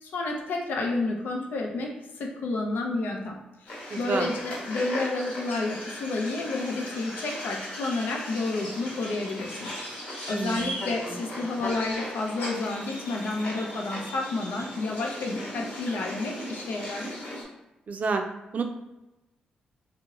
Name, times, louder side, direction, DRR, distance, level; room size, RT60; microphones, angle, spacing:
voice 1, 0.0-10.0 10.3-17.1, left 2 dB, 75° left, 1 dB, 0.6 m, -30 dB
sound 1, 3.7-17.4, left 1 dB, 60° left, 1.1 m, -37 dB
voice 2, 3.9-4.3 10.3-10.7 11.1-11.2 17.9-18.2 18.5-18.6, right 4 dB, 55° right, 5 dB, 0.4 m, -29 dB
2.9 x 2.1 x 3.6 m, 0.99 s
supercardioid pair, 55°, 3 cm